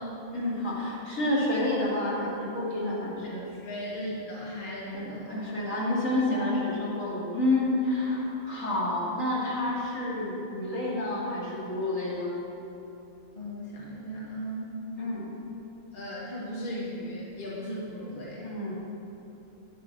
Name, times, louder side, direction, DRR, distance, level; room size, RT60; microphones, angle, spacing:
voice 1, 0.3-3.5 4.9-12.4 15.0-15.2 18.4-18.7, left 1 dB, 65° left, -6 dB, 3.2 m, -29 dB
voice 2, 3.2-5.3 13.3-14.8 15.9-18.6, equal, 35° left, -5 dB, 1.9 m, -37 dB
12.5 x 9.0 x 6.2 m, 2.9 s
omnidirectional pair, 1.5 m